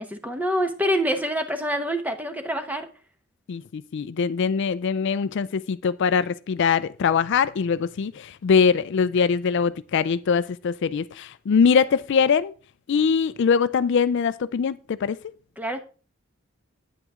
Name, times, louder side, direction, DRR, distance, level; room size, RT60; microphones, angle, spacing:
voice 1, 0.0-2.9 15.6-15.8, equal, 10° right, 0.9 m, -26 dB
voice 2, 3.5-12.5 12.9-15.2, left 6 dB, 55° left, 0.4 m, -22 dB
9.1 x 9.1 x 3.6 m
head